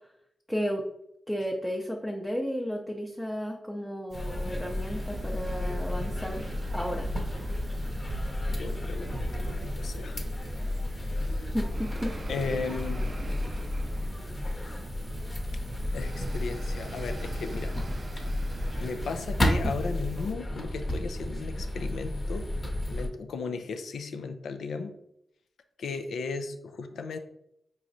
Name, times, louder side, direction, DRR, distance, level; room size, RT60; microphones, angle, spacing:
voice 1, 0.5-0.8 1.3-7.1 11.1-12.1, equal, 5° left, -1 dB, 0.6 m, -33 dB
sound 1, 4.1-23.1, left 1 dB, 40° left, 1.0 m, -32 dB
sound 2, 4.1-20.3, right 3 dB, 50° right, 0.4 m, -42 dB
voice 2, 8.6-10.3 10.9-11.5 12.3-13.3 15.9-17.8 18.3-22.5 22.9-24.9 25.8-27.2, left 4 dB, 80° left, 7 dB, 0.4 m, -36 dB
4.7 x 3.1 x 2.6 m, 0.78 s
supercardioid pair, 45°, 0 cm